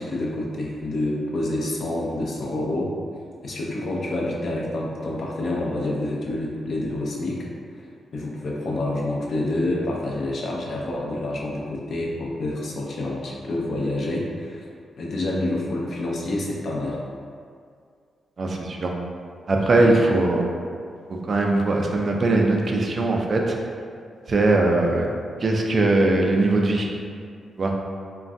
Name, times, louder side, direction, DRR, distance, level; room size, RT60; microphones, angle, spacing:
voice 1, 0.0-2.9 3.4-7.5 8.1-14.7 15.0-17.0 19.8-19.9, left 1 dB, 65° left, -3 dB, 0.5 m, -27 dB
voice 2, 18.4-18.9 19.5-20.4 21.1-23.6 24.3-25.1 25.4-26.9 27.6-27.7, right 2 dB, 50° right, 0 dB, 0.4 m, -20 dB
3.2 x 2.2 x 2.5 m, 2.2 s
cardioid pair, 65°, 0 cm